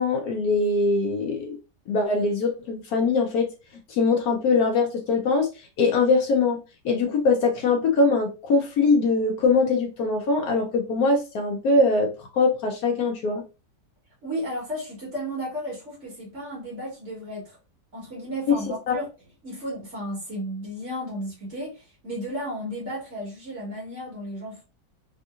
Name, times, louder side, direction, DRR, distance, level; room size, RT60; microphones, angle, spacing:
voice 1, 0.0-1.6 1.9-3.5 3.9-6.6 6.8-13.4 18.5-18.6 18.9-19.0, left 3 dB, 70° left, 1.0 m, -22 dB
voice 2, 14.2-17.6 17.9-19.1 19.4-24.6, equal, 45° right, 1.6 m, -33 dB
3.6 x 2.6 x 2.4 m
omnidirectional pair, 1.9 m